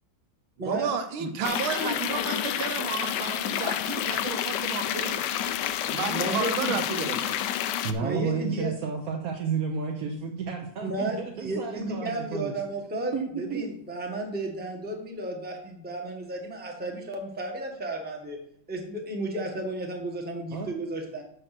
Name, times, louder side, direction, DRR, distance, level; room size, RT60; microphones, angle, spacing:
voice 1, 0.6-5.2 5.8-7.4, right 6 dB, 80° right, 8 dB, 1.7 m, -32 dB
sound 1, 1.4-7.9, left 10 dB, 75° left, 1.0 m, -29 dB
voice 2, 6.1-6.7 7.7-8.7 10.8-18.4 18.7-21.2, right 1 dB, 5° right, 1 dB, 0.9 m, -33 dB
voice 3, 7.8-12.5 13.1-13.6 20.5-20.7, right 6 dB, 60° right, 1 dB, 1.0 m, -31 dB
6.6 x 6.1 x 5.9 m, 0.70 s
omnidirectional pair, 2.3 m